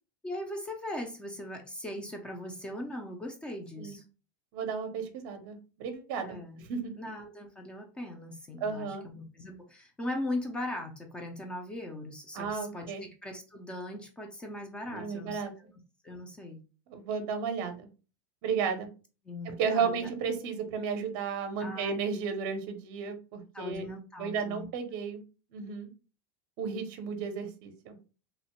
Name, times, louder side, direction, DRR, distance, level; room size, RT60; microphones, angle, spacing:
voice 1, 0.2-4.0 6.2-6.6 7.0-15.7 16.0-16.6 19.3-20.0 21.6-21.9 23.5-24.7, left 1 dB, 10° left, 4 dB, 0.3 m, -39 dB
voice 2, 4.5-7.0 8.6-9.0 12.3-13.0 14.9-15.5 16.9-17.9 18.4-18.9 19.4-23.8 24.2-25.2 25.5-25.9 26.6-28.0, right 6 dB, 45° right, 8 dB, 0.5 m, -33 dB
2.8 x 2.0 x 2.9 m, 0.33 s
supercardioid pair, 165°, 11 cm